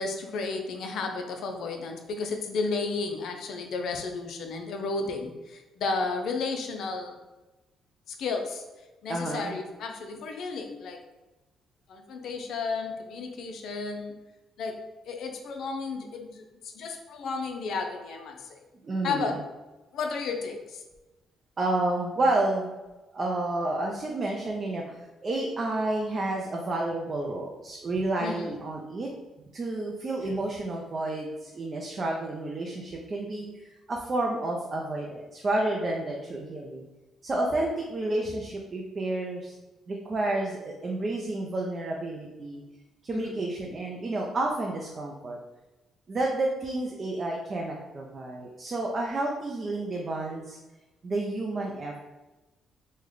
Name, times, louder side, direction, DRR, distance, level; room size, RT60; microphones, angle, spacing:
voice 1, 0.0-7.2 8.2-8.6 9.0-11.0 11.9-14.1 14.6-14.8 15.1-16.4 16.8-18.4 19.0-19.4 19.9-20.8 28.2-28.6 43.1-43.3, left 4 dB, 70° left, 4 dB, 0.5 m, -33 dB
voice 2, 9.1-9.6 18.8-19.4 21.6-22.7 23.1-29.1 29.5-36.8 37.2-39.5 39.9-42.6 43.0-45.4 46.1-50.6 51.0-52.0, right 2 dB, 35° right, -1 dB, 0.5 m, -30 dB
3.2 x 2.1 x 3.7 m, 1.1 s
cardioid pair, 90°, 0 cm